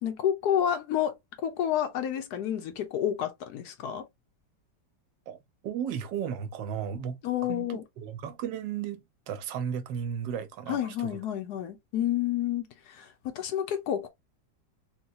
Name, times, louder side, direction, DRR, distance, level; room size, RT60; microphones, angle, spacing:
voice 1, 0.0-4.0 7.2-7.8 10.7-14.1, left 10 dB, 70° left, 1.1 m, -30 dB
voice 2, 5.6-7.2 7.5-11.1, right 8 dB, 85° right, 1.3 m, -34 dB
3.8 x 2.2 x 2.6 m
omnidirectional pair, 1.9 m